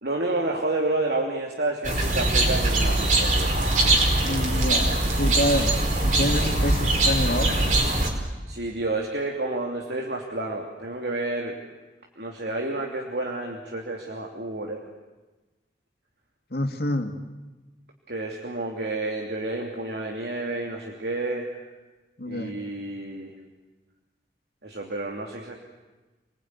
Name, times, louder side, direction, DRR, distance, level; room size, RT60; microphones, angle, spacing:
voice 1, 0.0-3.5 8.5-11.6 12.2-14.8 18.1-21.5 22.3-23.3 24.6-25.6, right 2 dB, 70° right, 0 dB, 3.0 m, -30 dB
sound 1, 1.8-8.1, right 2 dB, 45° right, 4.6 m, -22 dB
voice 2, 4.2-7.5 16.5-17.1 22.2-22.5, left 1 dB, 65° left, 5 dB, 2.6 m, -27 dB
29.0 x 20.5 x 9.7 m, 1.2 s
head